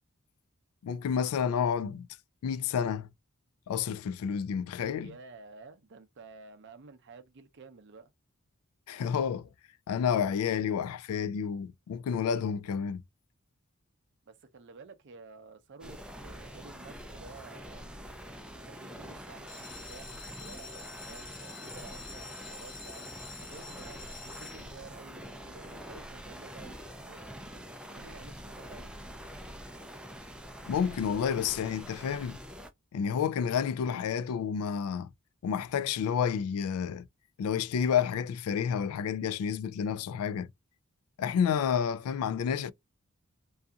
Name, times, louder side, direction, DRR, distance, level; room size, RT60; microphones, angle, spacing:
voice 1, 0.8-2.1 2.4-3.1 3.7-5.1 8.9-9.5 9.9-13.0 30.7-32.4 32.9-35.1 35.4-37.1 37.4-40.5 41.2-42.7, left 7 dB, 80° left, 0.3 m, -30 dB
voice 2, 5.0-8.1 14.3-18.1 18.6-27.6 27.9-28.9, right 4 dB, 55° right, 0.5 m, -52 dB
sound 1, 15.8-32.7, equal, 5° right, 0.3 m, -45 dB
sound 2, 19.5-25.1 25.7-26.2 26.6-26.7 26.9-27.0 27.4-27.6, left 4 dB, 65° left, 0.9 m, -47 dB
2.7 x 2.4 x 2.3 m
head